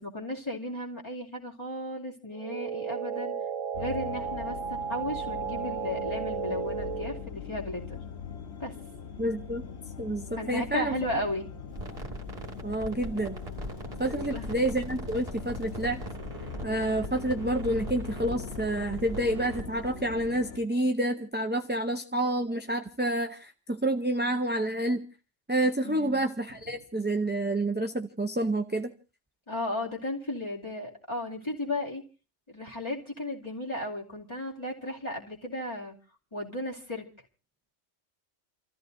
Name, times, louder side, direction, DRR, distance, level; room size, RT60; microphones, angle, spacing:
voice 1, 0.0-3.3 3.8-8.0 8.6-8.7 10.3-11.5 14.1-14.5 25.8-26.2 29.5-32.0 32.5-35.9 36.3-37.1, left 1 dB, 20° left, -3 dB, 2.6 m, -35 dB
sound 1, 2.3-7.3, right 7 dB, 80° right, 1.3 m, -34 dB
sound 2, 3.7-20.6, left 7 dB, 60° left, 1.3 m, -41 dB
voice 2, 9.2-9.7 10.0-10.9 12.6-13.3 14.0-16.0 16.6-25.1 25.5-28.9, right 1 dB, 10° right, 5 dB, 0.6 m, -29 dB
sound 3, 11.7-20.3, right 1 dB, 30° right, 2.0 m, -41 dB
30.0 x 14.0 x 2.6 m, 0.33 s
omnidirectional pair, 1.3 m